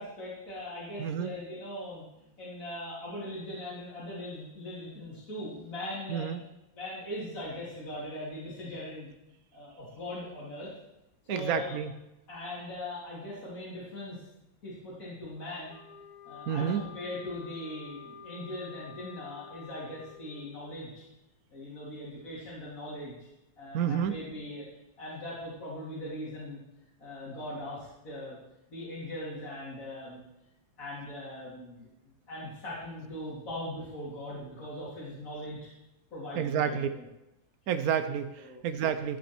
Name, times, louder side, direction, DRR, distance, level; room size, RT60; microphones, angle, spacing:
voice 1, 0.0-2.0 2.4-6.3 6.7-9.1 9.5-10.7 11.2-11.7 12.3-14.2 14.6-15.8 16.2-21.0 21.5-23.1 23.6-24.6 25.0-26.6 27.0-28.4 28.7-30.2 30.8-31.9 32.3-35.7 36.1-37.0 38.4-38.6, left 1 dB, 40° left, -8 dB, 3.3 m, -40 dB
voice 2, 1.0-1.3 6.1-6.4 11.3-11.9 16.5-16.8 23.7-24.2 36.3-36.9 37.7-39.2, right 8 dB, 85° right, 9 dB, 0.8 m, -29 dB
sound 1, 15.7-20.6, left 5 dB, 30° right, 4.1 m, -49 dB
13.5 x 6.8 x 4.5 m, 0.91 s
omnidirectional pair, 2.2 m